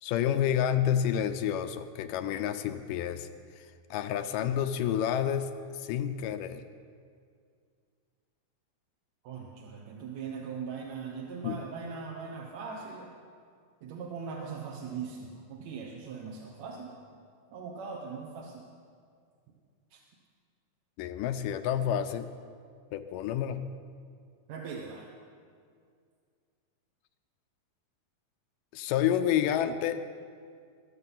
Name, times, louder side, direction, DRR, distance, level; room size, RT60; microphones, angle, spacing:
voice 1, 0.0-3.3 3.6-5.5 5.7-6.6 11.4-11.6 21.0-22.3 22.9-23.7 28.7-30.0, left 9 dB, 80° left, 9 dB, 2.1 m, -29 dB
voice 2, 9.2-13.1 13.8-16.9 17.5-18.6 19.9-20.0 24.5-25.1, right 5 dB, 65° right, -1 dB, 2.0 m, -40 dB
22.5 x 7.6 x 5.7 m, 2.2 s
omnidirectional pair, 3.9 m